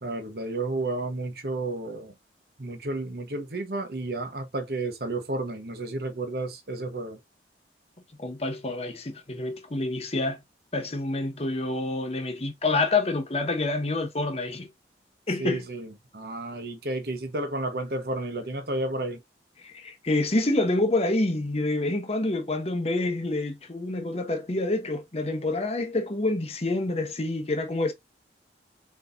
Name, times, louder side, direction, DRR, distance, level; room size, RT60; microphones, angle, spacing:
voice 1, 0.0-2.1 2.6-7.2 15.4-19.2, right 2 dB, 60° right, 1.1 m, -32 dB
voice 2, 8.2-10.4 10.7-14.7 15.3-15.7 19.6-27.9, left 2 dB, 35° left, 0.9 m, -27 dB
4.2 x 4.1 x 2.6 m
head